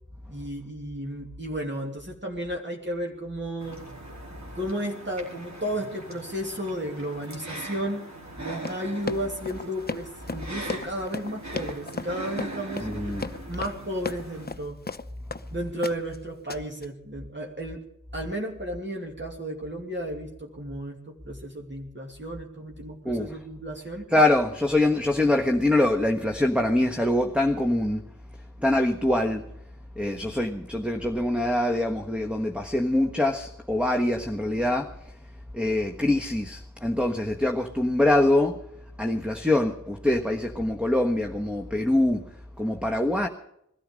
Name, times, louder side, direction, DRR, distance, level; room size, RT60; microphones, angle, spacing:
voice 1, 0.3-3.8 4.5-8.1 8.4-13.2 13.5-14.8 15.5-17.8 18.1-24.1, equal, 35° right, 2.7 m, -33 dB
sound 1, 3.6-14.5, right 2 dB, 60° right, 4.6 m, -41 dB
Run, 8.5-15.5 15.8-16.2 16.5-16.8, left 4 dB, 30° left, 0.7 m, -35 dB
voice 2, 12.8-13.3 23.0-23.4 24.1-28.0 28.6-29.4 30.0-34.9 35.5-38.6 39.0-42.2 42.6-43.3, left 1 dB, 5° right, 1.3 m, -24 dB
21.0 x 13.0 x 5.3 m
wide cardioid pair, 50°, 31 cm